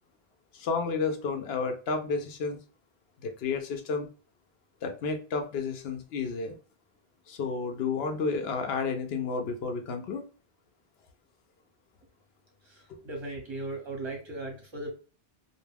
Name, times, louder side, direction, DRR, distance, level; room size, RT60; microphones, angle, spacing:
voice 1, 0.5-2.6 3.2-4.1 4.8-6.6 7.3-10.2 12.9-13.0, left 4 dB, 80° left, 5 dB, 0.8 m, -31 dB
voice 2, 12.6-15.0, right 2 dB, 30° right, 0 dB, 1.0 m, -38 dB
2.3 x 2.2 x 3.2 m, 0.36 s
omnidirectional pair, 1.0 m